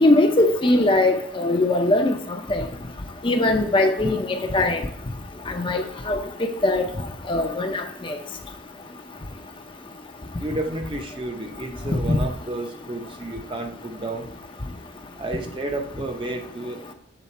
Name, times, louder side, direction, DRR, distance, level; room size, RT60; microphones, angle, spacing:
voice 1, 0.0-2.2 2.5-2.6 3.2-4.8 5.5-6.2 6.6-6.8 7.3-7.8 12.1-12.2, left 2 dB, 25° left, 5 dB, 0.6 m, -20 dB
voice 2, 10.4-14.3 15.2-16.9, right 2 dB, 25° right, 4 dB, 0.7 m, -31 dB
7.0 x 4.0 x 4.3 m, 0.68 s
head